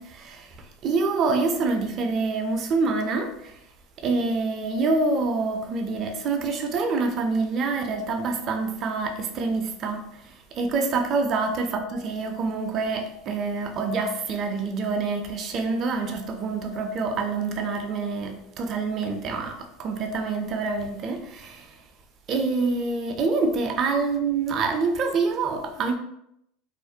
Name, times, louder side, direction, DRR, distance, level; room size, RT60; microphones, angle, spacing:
voice 1, 0.0-3.6 4.0-21.8 22.3-25.9, right 4 dB, 45° right, 0.4 m, -26 dB
2.4 x 2.0 x 2.7 m
hypercardioid pair, 95°, 0 cm